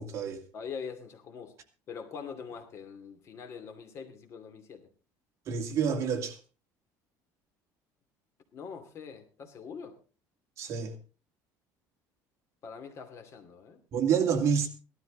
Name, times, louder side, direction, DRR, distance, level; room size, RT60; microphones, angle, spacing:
voice 1, 0.0-0.4 5.5-6.4 10.6-10.9 13.9-14.7, right 7 dB, 40° right, 2.3 m, -28 dB
voice 2, 0.5-1.6 1.9-4.9 8.5-10.0 12.6-13.8, left 6 dB, 40° left, 2.5 m, -43 dB
17.5 x 13.0 x 3.9 m
cardioid pair, 165°, 7 cm